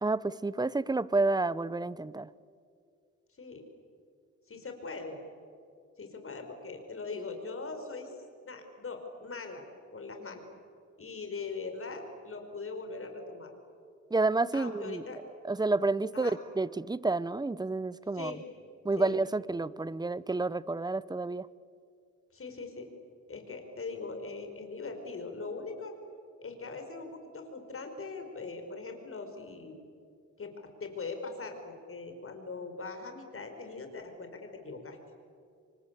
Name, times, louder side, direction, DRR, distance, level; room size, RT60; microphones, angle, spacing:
voice 1, 0.0-2.3 14.1-15.0 15.4-16.3 16.6-18.4 18.8-21.5, right 3 dB, 15° right, 19 dB, 0.8 m, -30 dB
voice 2, 4.5-5.2 6.0-8.1 8.4-9.6 9.9-10.4 11.0-13.5 14.5-15.2 16.1-16.4 18.1-18.4 19.0-19.2 22.3-22.9 23.3-25.9 26.4-29.8 30.4-30.5 30.8-35.0, left 4 dB, 45° left, 5 dB, 5.7 m, -41 dB
27.5 x 24.5 x 8.5 m, 2.3 s
cardioid pair, 75°, 31 cm